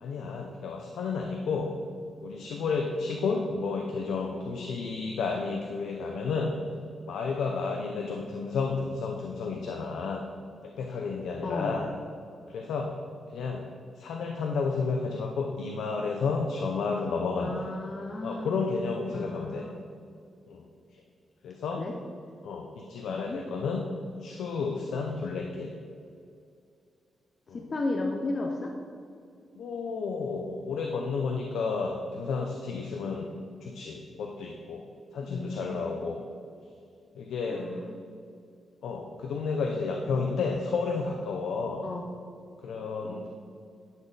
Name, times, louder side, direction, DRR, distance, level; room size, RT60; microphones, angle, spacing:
voice 1, 0.0-1.7 2.2-6.5 7.1-10.2 10.6-11.9 12.5-13.0 13.3-13.7 14.0-17.7 18.2-19.7 20.5-20.6 20.9-21.0 21.4-21.9 22.4-23.8 24.2-25.7 27.5-27.6 29.6-33.3 33.6-34.8 35.1-36.2 37.1-37.7 38.8-41.9 42.6-43.3, left 4 dB, 90° left, 2 dB, 0.7 m, -31 dB
voice 2, 11.4-11.7 17.4-18.5 19.1-19.8 21.7-21.9 23.1-23.4 27.5-28.8 35.3-35.9 37.5-38.0 41.8-42.0 43.0-43.3, left 2 dB, 35° left, 2 dB, 0.7 m, -34 dB
11.0 x 6.3 x 4.0 m, 2.4 s
cardioid pair, 125°, 0 cm